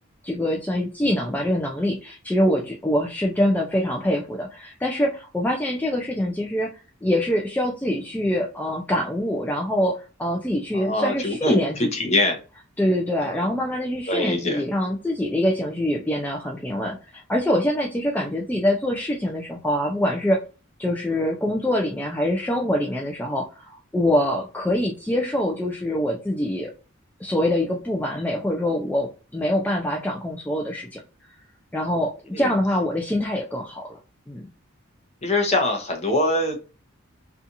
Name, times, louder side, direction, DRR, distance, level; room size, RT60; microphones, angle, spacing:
voice 1, 0.2-6.7 7.0-12.1 12.8-20.4 20.8-26.7 27.2-31.0 31.7-34.0 34.3-34.5, left 1 dB, 10° left, -1 dB, 0.3 m, -24 dB
voice 2, 10.7-11.7 11.9-12.4 13.2-13.5 14.1-14.6 32.3-32.5 35.2-36.6, left 2 dB, 35° left, 4 dB, 0.7 m, -23 dB
2.7 x 2.3 x 2.5 m, 0.33 s
head